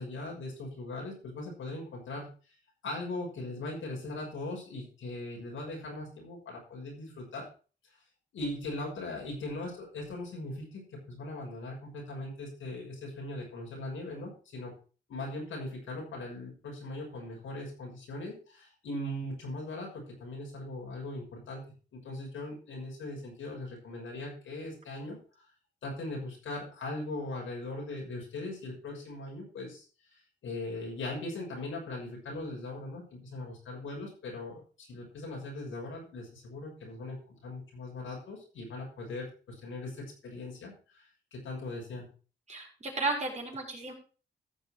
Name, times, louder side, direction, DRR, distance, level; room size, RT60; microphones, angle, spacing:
voice 1, 0.0-2.3 2.8-7.5 8.3-14.7 15.1-21.6 21.9-25.2 25.8-29.8 30.4-41.0 41.3-42.1, left 2 dB, 85° left, -1 dB, 6.3 m, -39 dB
voice 2, 42.5-43.9, right 3 dB, 35° right, 0 dB, 4.8 m, -33 dB
15.0 x 6.6 x 4.6 m, 0.36 s
cardioid pair, 95°, 20 cm